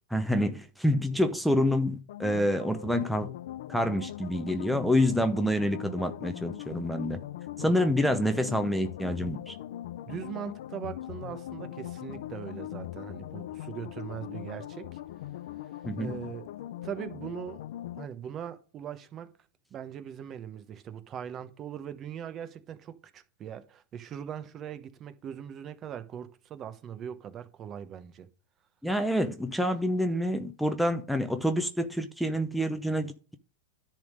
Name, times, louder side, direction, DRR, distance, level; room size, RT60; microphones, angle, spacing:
voice 1, 0.1-3.3 3.7-7.2 7.6-9.5 15.8-16.2 28.8-33.3, equal, ahead, 0.7 m, -27 dB
sound 1, 2.1-18.1, left 13 dB, 75° left, 0.5 m, -41 dB
voice 2, 10.1-15.0 16.0-16.5 16.8-17.6 17.9-19.3 19.7-28.3, right 9 dB, 30° right, 1.0 m, -40 dB
10.5 x 3.6 x 6.5 m
hypercardioid pair, 125°, 0 cm